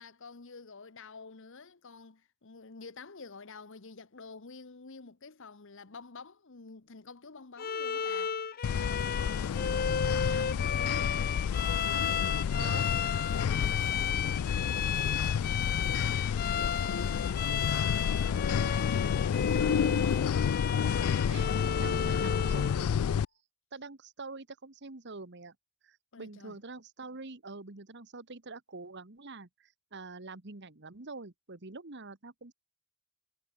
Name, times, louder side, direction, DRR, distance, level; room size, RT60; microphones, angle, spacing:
voice 1, 0.0-8.3 8.7-12.9 13.8-14.4 14.7-20.2 26.1-26.6, left 4 dB, 60° left, 1.1 m, -48 dB
Bowed string instrument, 7.6-22.8, left 7 dB, 45° left, 0.8 m, -34 dB
sound 1, 8.6-23.2, left 7 dB, 80° left, 0.4 m, -30 dB
voice 2, 12.5-12.9 21.3-21.5 21.8-22.9 23.7-25.5 25.8-32.5, right 3 dB, 55° right, 1.6 m, -45 dB
head